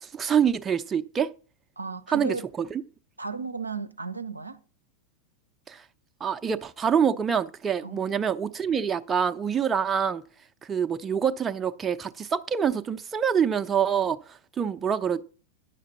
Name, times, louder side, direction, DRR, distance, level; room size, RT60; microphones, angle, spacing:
voice 1, 0.0-1.3 2.1-2.8 5.7-5.8 6.2-10.2 10.6-15.2, right 7 dB, 20° right, 0.6 m, -26 dB
voice 2, 1.8-2.5 3.2-4.6 7.8-8.0, right 4 dB, 85° right, 0.6 m, -34 dB
9.9 x 6.5 x 5.5 m
figure-of-eight pair, 90°, 0 cm